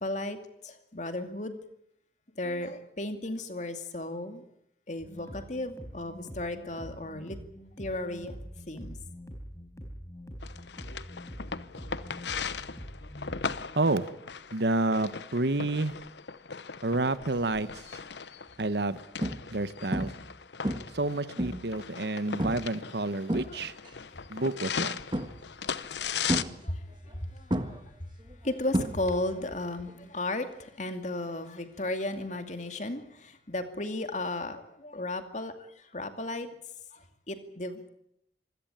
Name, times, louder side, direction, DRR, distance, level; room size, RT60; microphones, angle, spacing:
voice 1, 0.0-1.6 2.4-4.4 4.9-7.4 7.8-8.4 8.7-9.0 23.4-23.6 25.6-28.1 28.4-36.5 36.9-37.9, left 1 dB, 45° left, 2.3 m, -35 dB
sound 1, 5.0-13.6, equal, 20° left, 4.4 m, -45 dB
sound 2, 10.4-26.4, left 6 dB, 80° left, 0.9 m, -38 dB
voice 2, 13.8-14.1 14.5-15.9 16.8-18.0 18.6-19.0 19.5-20.1 20.9-23.7 24.3-24.9, right 2 dB, 70° right, 1.1 m, -29 dB
sound 3, 17.6-17.9 18.5-18.6 19.2-19.6 19.9-20.3 20.6-21.8 22.4-22.7 23.1-23.9 25.1-25.6 26.3-27.2 27.5-29.4 29.6-30.1 32.1-32.2, equal, 25° right, 1.5 m, -32 dB
25.5 x 16.5 x 9.0 m
head